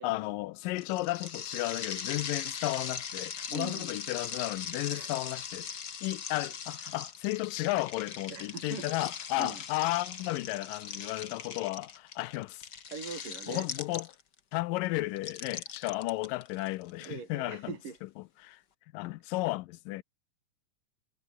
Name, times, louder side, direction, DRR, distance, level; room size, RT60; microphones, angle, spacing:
voice 1, 0.0-12.7 13.5-14.1 14.5-17.8 18.0-18.6 18.9-20.0, left 19 dB, 85° left, 2.3 m, -34 dB
sound 1, 0.8-14.4 15.2-17.0, left 7 dB, 40° left, 1.7 m, -40 dB
voice 2, 3.5-3.9 4.9-5.1 8.3-8.9 9.4-9.6 12.9-13.7 17.0-18.0, right 5 dB, 70° right, 5.9 m, -41 dB
omnidirectional pair, 3.9 m